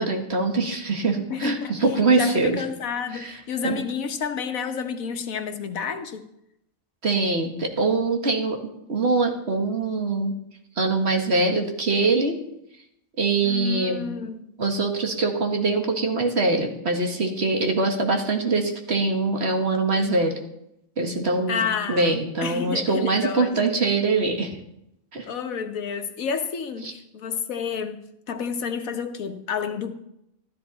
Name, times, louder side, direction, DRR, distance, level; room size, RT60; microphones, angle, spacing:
voice 1, 0.0-2.6 3.1-3.4 3.6-3.8 7.0-8.6 8.9-10.4 10.8-12.4 13.2-14.1 14.6-20.3 21.0-21.6 21.9-24.5 25.1-25.3 26.8-26.9, right 3 dB, 50° right, 3 dB, 1.8 m, -23 dB
voice 2, 1.3-1.8 2.1-6.2 13.4-14.5 21.5-22.1 22.4-23.8 25.3-28.0 28.3-29.9, left 6 dB, 90° left, 7 dB, 1.5 m, -30 dB
13.0 x 13.0 x 4.1 m, 0.80 s
omnidirectional pair, 1.4 m